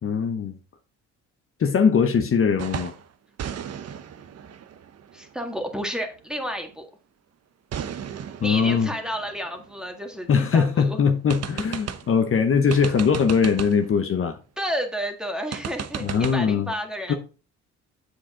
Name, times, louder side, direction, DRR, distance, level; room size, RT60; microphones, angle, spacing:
voice 1, 0.0-0.5 1.6-2.9 8.4-8.9 10.3-14.4 16.0-16.7 17.1-17.2, left 6 dB, 45° left, 0.9 m, -21 dB
sound 1, 2.6-3.1 3.4-6.0 7.7-10.4 10.8-10.9 11.3-12.2 12.7-13.9 15.5-16.4, right 8 dB, 55° right, 0.8 m, -35 dB
voice 2, 5.1-6.9 8.4-11.0 14.6-17.1, equal, ahead, 1.9 m, -31 dB
7.5 x 6.7 x 3.8 m
cardioid pair, 90°, 30 cm